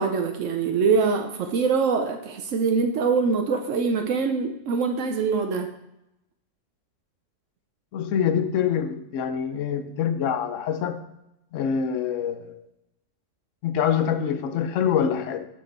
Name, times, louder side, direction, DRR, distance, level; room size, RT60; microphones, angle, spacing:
voice 1, 0.0-5.7, right 5 dB, 80° right, 5 dB, 1.0 m, -24 dB
voice 2, 7.9-11.0 11.5-12.6 13.6-15.5, left 8 dB, 85° left, 10 dB, 1.0 m, -25 dB
6.2 x 6.1 x 4.6 m, 0.86 s
omnidirectional pair, 1.3 m